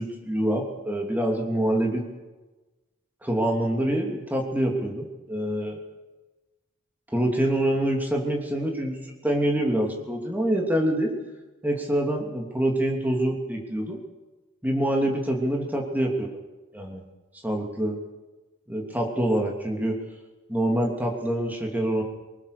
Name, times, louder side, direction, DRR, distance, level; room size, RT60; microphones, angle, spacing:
voice 1, 0.0-2.1 3.2-5.8 7.1-11.1 11.6-14.0 14.6-16.4 16.7-17.0 17.4-18.0 18.7-20.0 20.5-22.0, right 1 dB, 10° right, 0 dB, 2.9 m, -26 dB
24.5 x 19.5 x 6.8 m, 1.2 s
head